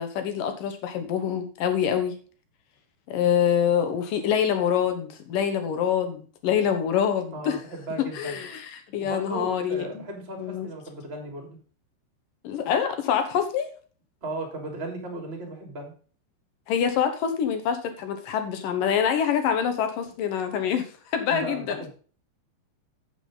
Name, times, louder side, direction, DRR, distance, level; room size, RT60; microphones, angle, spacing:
voice 1, 0.0-2.1 3.1-7.6 8.1-10.0 10.4-10.7 12.4-13.7 16.7-21.8, left 8 dB, 65° left, 7 dB, 2.4 m, -25 dB
voice 2, 7.3-8.4 9.0-11.6 14.2-15.9 21.3-21.9, right 2 dB, 15° right, 2 dB, 2.8 m, -36 dB
9.0 x 8.5 x 3.9 m, 0.39 s
omnidirectional pair, 5.2 m